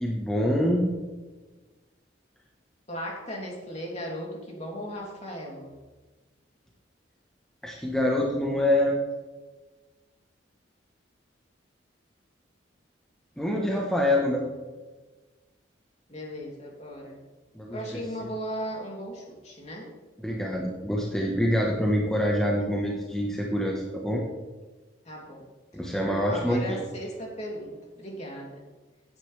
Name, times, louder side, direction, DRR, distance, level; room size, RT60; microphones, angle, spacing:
voice 1, 0.0-0.9 7.6-9.0 13.4-14.4 17.5-18.0 20.2-24.2 25.7-26.8, left 1 dB, 5° left, -2 dB, 1.3 m, -26 dB
voice 2, 2.9-5.7 16.1-17.2 17.7-19.9 25.0-25.5 26.0-28.6, equal, 35° left, -2 dB, 3.2 m, -37 dB
16.0 x 9.9 x 3.5 m, 1.3 s
head